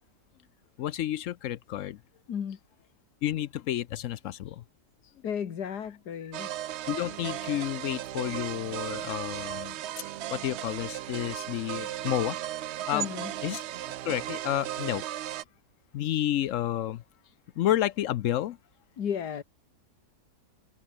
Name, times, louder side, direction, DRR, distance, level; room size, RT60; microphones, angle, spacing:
voice 1, 0.8-2.0 3.2-4.6 6.9-9.8 10.3-12.4 12.9-13.1 13.4-13.6 14.0-15.0 15.9-17.0 17.6-18.6, left 12 dB, 70° left, 0.8 m, -30 dB
voice 2, 5.2-6.5 12.9-13.3 19.0-19.4, left 8 dB, 90° left, 2.0 m, -33 dB
sound 1, 6.3-15.4, right 12 dB, 70° right, 0.6 m, -36 dB
omnidirectional pair, 1.7 m